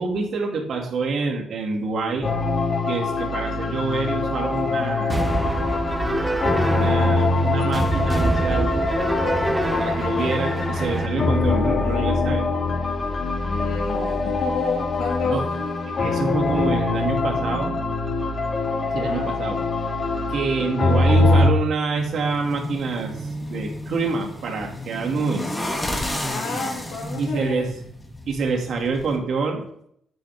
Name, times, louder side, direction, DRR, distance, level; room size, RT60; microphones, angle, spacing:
voice 1, 0.0-2.3 2.9-5.2 6.7-8.9 9.8-12.4 15.2-15.5 15.9-17.7 18.9-19.6 20.3-23.1 23.4-25.5 27.2-27.7 28.3-29.6, right 4 dB, 60° right, 1 dB, 2.6 m, -26 dB
sound 1, 2.2-21.5, left 3 dB, 35° left, 2.2 m, -23 dB
sound 2, 5.1-11.1, right 2 dB, 20° right, 0.8 m, -25 dB
voice 2, 13.4-15.4 19.0-19.4 20.6-21.0 26.3-27.6, left 5 dB, 70° left, -2 dB, 2.7 m, -30 dB
sound 3, 22.0-29.2, left 1 dB, 15° left, 2.0 m, -32 dB
9.2 x 9.1 x 3.7 m, 0.69 s
cardioid pair, 90°, 0 cm